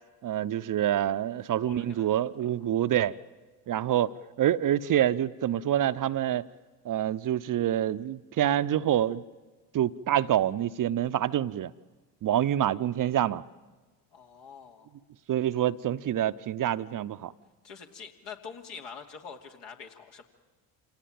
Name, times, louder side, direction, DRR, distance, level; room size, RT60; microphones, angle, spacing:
voice 1, 0.2-3.1 3.7-6.4 6.8-9.2 9.7-11.7 12.2-13.4 15.3-17.3, right 11 dB, 45° right, 13 dB, 0.8 m, -26 dB
voice 2, 1.3-2.2 2.6-2.7 3.7-4.1 14.1-14.9 17.6-20.2, left 6 dB, 65° left, 3 dB, 2.7 m, -46 dB
26.5 x 17.5 x 9.3 m, 1.3 s
hypercardioid pair, 55°, 46 cm